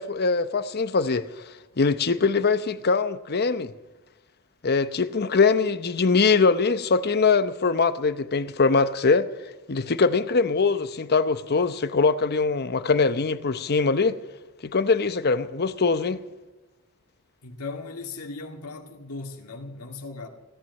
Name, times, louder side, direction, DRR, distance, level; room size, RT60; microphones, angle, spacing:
voice 1, 0.0-1.4 1.8-3.7 4.6-9.3 9.7-14.2 14.6-16.2, left 4 dB, 45° left, 0.8 m, -22 dB
voice 2, 17.4-20.3, left 3 dB, 80° left, 2.1 m, -37 dB
17.5 x 11.0 x 6.5 m
head